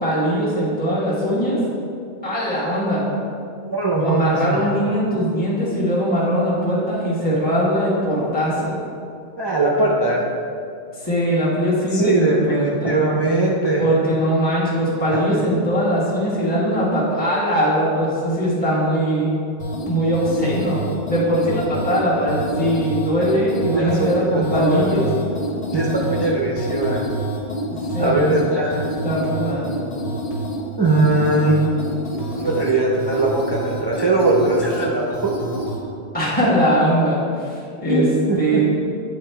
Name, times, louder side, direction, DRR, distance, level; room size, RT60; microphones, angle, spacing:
voice 1, 0.0-1.6 2.2-3.0 3.9-8.8 10.9-13.0 13.8-19.3 19.9-25.1 27.9-28.6 29.0-29.7 36.1-38.0 38.4-38.6, equal, 10° left, -7 dB, 1.3 m, -21 dB
voice 2, 3.6-4.6 9.4-10.2 11.9-13.9 15.1-15.4 23.7-25.0 25.7-27.0 28.0-28.8 30.8-31.6 32.4-35.1 37.9-38.6, right 2 dB, 30° right, -4 dB, 0.5 m, -20 dB
sound 1, 19.6-35.8, right 1 dB, 65° left, 1.4 m, -28 dB
8.7 x 3.7 x 4.6 m, 2.4 s
omnidirectional pair, 1.1 m